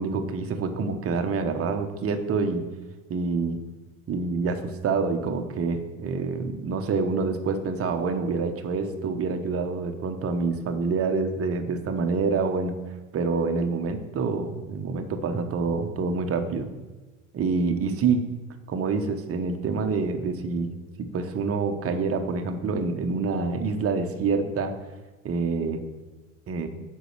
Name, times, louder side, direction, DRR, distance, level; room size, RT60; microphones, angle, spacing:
voice 1, 0.0-2.6 3.1-3.6 4.1-12.7 13.1-16.7 17.3-18.2 18.7-20.7 21.0-24.7 25.2-25.8 26.5-26.7, right 4 dB, 35° right, 6 dB, 1.2 m, -27 dB
8.1 x 5.6 x 6.2 m, 1.2 s
hypercardioid pair, 70°, 41 cm